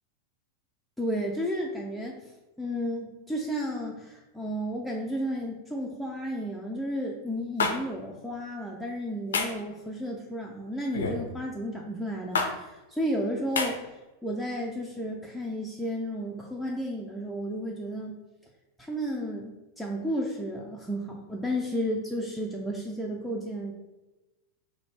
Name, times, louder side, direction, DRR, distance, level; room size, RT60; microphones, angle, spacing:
voice 1, 1.0-2.2 2.6-13.9 14.2-18.2 18.8-23.7, equal, ahead, -3 dB, 0.5 m, -32 dB
sound 1, 7.6-7.8 9.3-9.6 10.9-11.2 12.4-12.5 13.6-13.7, left 4 dB, 65° left, 0.5 m, -26 dB
3.8 x 2.1 x 4.2 m, 1.0 s
figure-of-eight pair, 90°, 0 cm